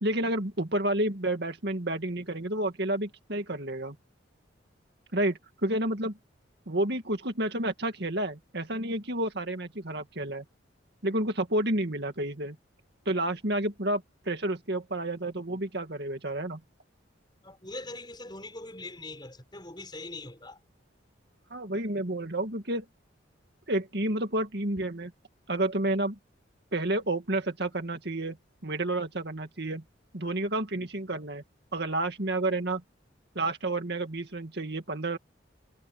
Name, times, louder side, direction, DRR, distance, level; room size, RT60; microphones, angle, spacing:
voice 1, 0.0-4.0 5.1-6.2 6.7-10.4 11.0-12.6 13.1-16.6 21.5-22.9 23.7-25.1 25.5-26.2 26.7-28.4 28.6-29.8 30.1-31.4 31.7-32.8 33.4-35.2, right 1 dB, 55° right, 2.1 m, -30 dB
voice 2, 17.4-20.6, left 2 dB, 25° left, 6.3 m, -42 dB
head